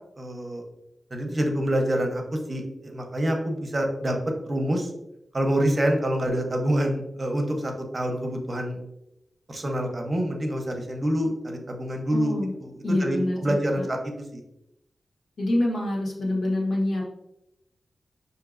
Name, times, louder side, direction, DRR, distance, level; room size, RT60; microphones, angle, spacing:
voice 1, 0.2-0.6 1.1-4.2 4.5-4.9 5.3-8.8 9.5-14.4, equal, 35° right, 3 dB, 0.7 m, -27 dB
voice 2, 12.1-12.5 12.8-13.8 15.4-17.1, left 1 dB, 90° left, -2 dB, 1.1 m, -26 dB
5.7 x 2.7 x 2.5 m, 0.86 s
wide cardioid pair, 90°, 0 cm